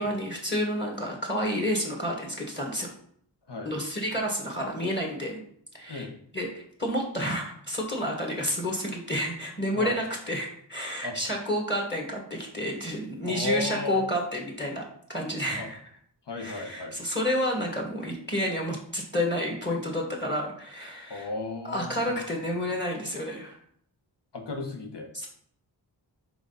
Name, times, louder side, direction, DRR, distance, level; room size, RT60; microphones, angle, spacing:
voice 1, 0.0-2.9 3.6-5.4 5.7-6.1 6.3-14.8 15.1-15.8 16.3-21.3 21.6-23.6 25.1-25.3, equal, 25° left, -1 dB, 1.7 m, -30 dB
voice 2, 13.2-14.0 15.5-15.7 16.3-17.0 21.1-22.2 24.3-25.1, left 2 dB, 65° left, 4 dB, 1.2 m, -34 dB
4.9 x 4.0 x 5.5 m, 0.64 s
wide cardioid pair, 55°, 45 cm